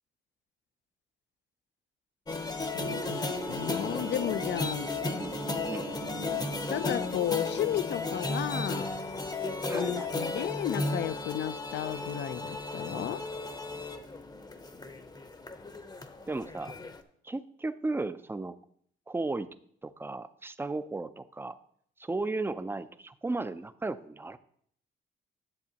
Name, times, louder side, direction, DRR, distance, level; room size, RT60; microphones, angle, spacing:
sound 1, 2.3-17.0, left 3 dB, 20° left, 0.8 m, -35 dB
voice 1, 2.7-4.9 6.2-8.9 9.7-13.2, left 11 dB, 65° left, 0.5 m, -33 dB
sound 2, 2.8-9.4, right 4 dB, 60° right, 1.0 m, -43 dB
voice 2, 9.6-10.5 16.3-16.7 17.2-18.6 19.1-19.5 19.8-21.6 22.0-24.4, right 3 dB, 10° right, 0.4 m, -35 dB
11.0 x 7.1 x 2.9 m
cardioid pair, 90°, 20 cm